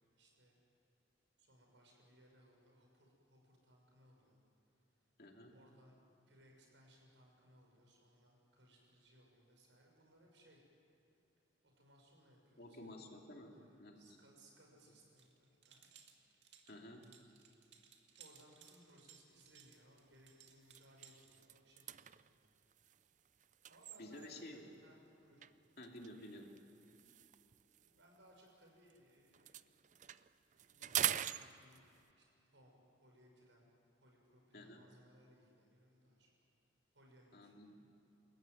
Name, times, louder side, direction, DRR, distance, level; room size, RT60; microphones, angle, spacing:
voice 1, 0.2-0.6 1.4-4.4 5.5-6.0 6.3-10.6 11.6-12.9 13.5-15.9 18.2-22.2 23.7-25.4 27.8-29.6 30.7-31.9 32.2-33.7 34.0-36.3 36.9-37.5, equal, 85° right, 0 dB, 6.4 m, -66 dB
voice 2, 5.2-5.6 12.6-14.0 16.7-17.1 24.0-24.7 25.8-26.5 34.5-34.9 37.3-37.8, left 1 dB, 55° left, 1 dB, 2.8 m, -52 dB
sound 1, 15.2-21.4, right 8 dB, 70° right, 2.2 m, -63 dB
sound 2, 19.4-19.7 20.1-20.3 20.6-24.5 25.4-29.0 29.3-32.1, right 11 dB, 40° right, 0.5 m, -44 dB
27.5 x 14.5 x 9.4 m, 2.9 s
head